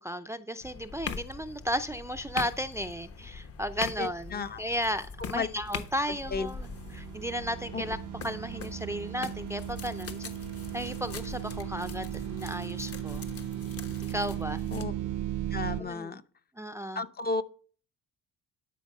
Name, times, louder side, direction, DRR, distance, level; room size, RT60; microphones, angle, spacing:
voice 1, 0.0-8.0 8.2-10.3 10.7-13.3 14.1-14.6 15.8-16.2 16.6-17.0, equal, 10° right, 0.4 m, -34 dB
sound 1, 0.6-14.9, left 5 dB, 50° left, 1.1 m, -42 dB
voice 2, 4.0-4.6 5.3-5.5 6.1-6.5 7.7-7.8 14.7-14.9 15.5-16.2 16.9-17.4, left 4 dB, 30° left, 0.7 m, -33 dB
sound 2, 6.0-15.8, right 12 dB, 80° right, 0.7 m, -37 dB
11.5 x 4.6 x 5.3 m
cardioid pair, 90°, 30 cm